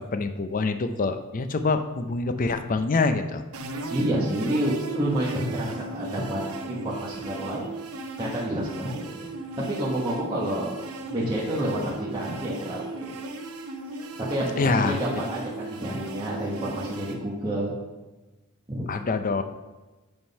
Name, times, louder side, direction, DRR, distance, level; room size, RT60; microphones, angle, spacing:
voice 1, 0.1-3.4 14.6-15.0 18.9-19.4, left 3 dB, 35° left, 9 dB, 0.5 m, -25 dB
sound 1, 3.5-17.1, right 3 dB, 70° right, 0.8 m, -37 dB
voice 2, 3.9-7.6 8.2-9.3 9.7-10.7 11.1-13.1 14.2-17.7 18.7-18.8, right 1 dB, 20° right, -8 dB, 1.2 m, -29 dB
8.7 x 3.7 x 5.4 m, 1.1 s
head